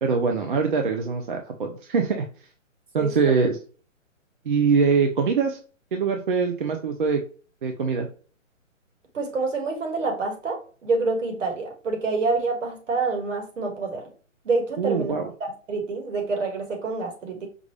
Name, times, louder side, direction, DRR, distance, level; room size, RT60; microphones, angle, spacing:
voice 1, 0.0-2.3 2.9-3.6 4.5-5.6 5.9-7.2 7.6-8.1 14.8-15.3, right 5 dB, 40° right, 4 dB, 0.6 m, -23 dB
voice 2, 3.0-3.3 9.1-14.0 14.5-15.1 15.4-17.5, right 3 dB, 70° right, 4 dB, 1.9 m, -27 dB
5.2 x 2.4 x 3.2 m, 0.39 s
hypercardioid pair, 170°, 39 cm